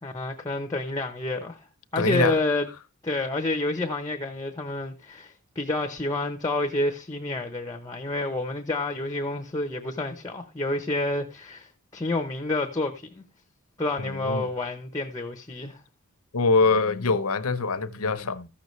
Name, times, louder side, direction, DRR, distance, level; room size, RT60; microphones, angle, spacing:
voice 1, 0.0-1.6 1.9-2.7 3.0-13.2 13.8-15.8, left 2 dB, 15° left, 0.8 m, -29 dB
voice 2, 2.0-2.4 14.0-14.5 16.3-18.5, left 4 dB, 75° left, 0.8 m, -24 dB
14.0 x 6.8 x 3.2 m
head